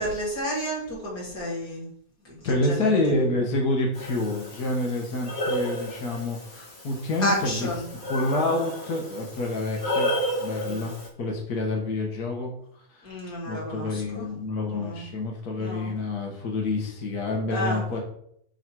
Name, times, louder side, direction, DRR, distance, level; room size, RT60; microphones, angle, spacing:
voice 1, 0.0-1.9 2.2-3.0 7.2-7.9 10.7-10.9 13.0-14.3 14.7-15.1 15.6-16.0 17.5-17.9, equal, 25° left, -5 dB, 3.0 m, -31 dB
voice 2, 2.4-7.7 8.1-12.5 12.9-13.1 13.4-18.0, left 2 dB, 80° left, 0 dB, 0.8 m, -28 dB
Breathing, 3.9-11.1, equal, 45° left, 0.8 m, -32 dB
9.8 x 4.1 x 4.7 m, 0.69 s
omnidirectional pair, 4.1 m